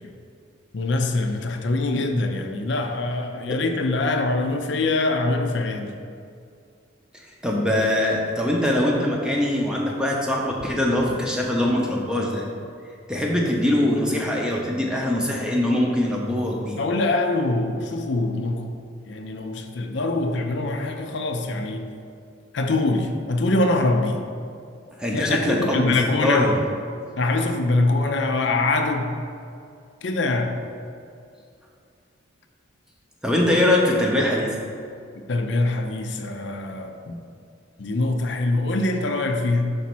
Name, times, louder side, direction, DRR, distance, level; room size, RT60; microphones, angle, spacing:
voice 1, 0.7-5.9 16.8-18.7 19.1-21.9 22.5-24.2 25.1-26.5 27.2-29.2 30.0-30.6 35.2-37.1 37.8-39.8, left 2 dB, 65° left, 4 dB, 0.5 m, -24 dB
voice 2, 7.4-12.5 13.1-16.8 25.0-26.6 33.2-34.6, left 1 dB, 5° right, -2 dB, 0.7 m, -22 dB
5.1 x 4.1 x 6.0 m, 2.4 s
head